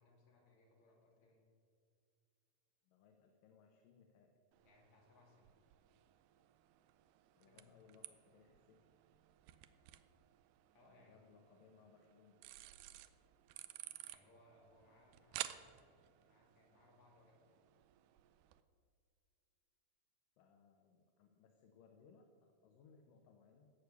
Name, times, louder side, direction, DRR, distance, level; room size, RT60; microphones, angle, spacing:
voice 1, 0.0-1.4 4.6-5.6 7.4-7.9 10.7-11.3 14.1-15.8 16.2-17.6, left 2 dB, 50° left, -2 dB, 4.0 m, -68 dB
voice 2, 2.8-4.3 7.4-8.9 10.8-12.4 20.4-23.7, left 5 dB, 70° left, 4 dB, 2.5 m, -66 dB
sound 1, 4.5-18.6, right 14 dB, 85° right, 1.8 m, -54 dB
16.0 x 6.5 x 8.2 m, 2.3 s
omnidirectional pair, 4.3 m